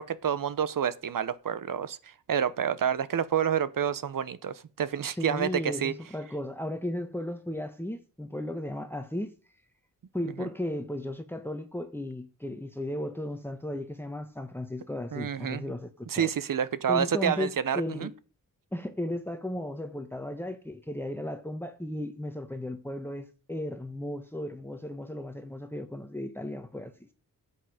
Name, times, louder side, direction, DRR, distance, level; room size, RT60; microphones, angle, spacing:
voice 1, 0.0-5.9 10.4-10.5 15.1-15.7 16.1-18.1, right 8 dB, 75° right, 1.0 m, -29 dB
voice 2, 5.1-9.3 10.1-16.3 16.9-18.1 18.7-27.1, left 1 dB, 5° left, 1.3 m, -35 dB
13.5 x 8.5 x 5.0 m
cardioid pair, 65°, 33 cm